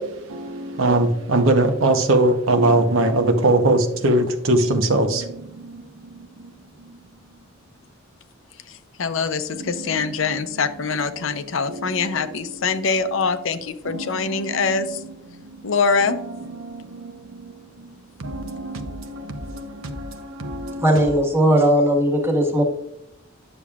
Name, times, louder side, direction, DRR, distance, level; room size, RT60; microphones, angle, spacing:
voice 1, 0.0-7.4 9.5-10.3 11.1-11.4 11.7-12.8 13.8-15.7 16.0-21.2, right 2 dB, 85° right, 0.9 m, -24 dB
voice 2, 8.7-15.0 15.6-16.2, left 5 dB, 75° left, 0.6 m, -24 dB
voice 3, 20.8-22.6, equal, 10° right, 1.4 m, -18 dB
10.0 x 6.9 x 2.4 m
head